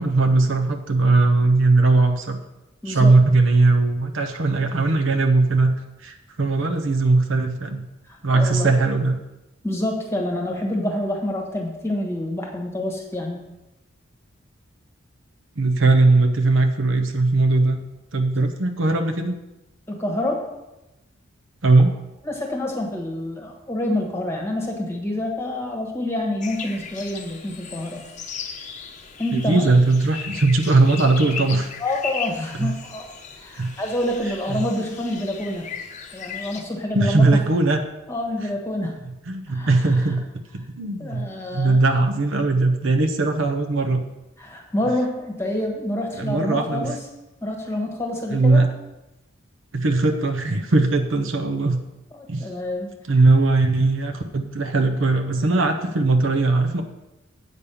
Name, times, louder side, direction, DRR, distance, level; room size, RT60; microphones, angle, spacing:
voice 1, 0.0-2.4 2.8-5.7 6.0-7.8 8.2-9.2 15.6-17.8 18.1-19.4 21.6-21.9 29.3-31.7 32.6-32.7 33.6-33.7 34.5-34.7 36.9-37.8 39.3-40.2 40.5-41.3 41.5-44.1 46.2-46.9 48.3-48.7 49.7-51.8 52.3-52.5 53.1-56.8, right 3 dB, 65° right, 5 dB, 0.7 m, -19 dB
voice 2, 2.8-3.2 8.1-8.7 9.6-13.4 19.9-20.5 22.2-28.0 29.2-29.7 31.8-33.1 33.4-35.7 36.1-37.4 38.1-39.0 39.5-40.1 41.0-41.8 44.4-47.0 47.4-48.7 52.1-53.0, left 1 dB, 10° left, 1 dB, 1.3 m, -27 dB
sound 1, 26.4-36.6, left 6 dB, 35° left, 0.8 m, -36 dB
8.4 x 5.3 x 6.9 m, 0.96 s
head